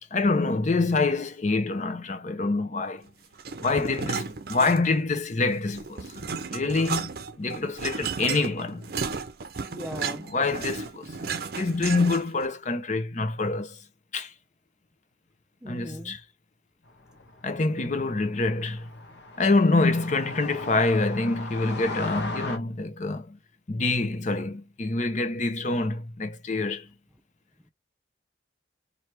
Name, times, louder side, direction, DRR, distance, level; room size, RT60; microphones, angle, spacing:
voice 1, 0.1-3.1 3.6-7.1 7.4-8.8 10.1-11.2 11.6-13.8 14.1-14.3 15.7-16.2 17.4-18.9 19.4-23.4 23.7-26.9, left 3 dB, 45° left, 0.7 m, -26 dB
sound 1, 3.4-5.1 5.4-12.5, right 5 dB, 60° right, 0.6 m, -34 dB
voice 2, 9.7-10.2 15.6-16.1, equal, 5° right, 0.4 m, -38 dB
sound 2, 17.0-22.6, left 2 dB, 70° left, 1.0 m, -38 dB
3.2 x 2.7 x 4.4 m
head